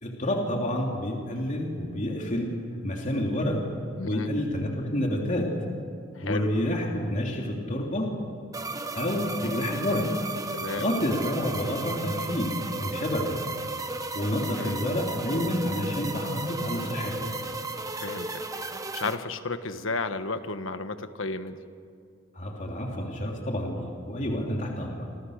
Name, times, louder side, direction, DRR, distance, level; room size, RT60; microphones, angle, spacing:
voice 1, 0.0-3.7 4.0-5.6 6.2-8.2 8.9-10.2 10.8-13.4 14.1-17.3 22.3-25.1, left 1 dB, 40° left, 0 dB, 3.1 m, -29 dB
voice 2, 4.0-4.3 6.1-6.5 10.5-10.9 14.6-14.8 18.0-18.4 18.9-21.6, left 3 dB, 70° left, 10 dB, 1.4 m, -33 dB
sound 1, 8.5-19.2, right 2 dB, 15° right, 1.3 m, -34 dB
28.0 x 27.0 x 6.6 m, 2.3 s
head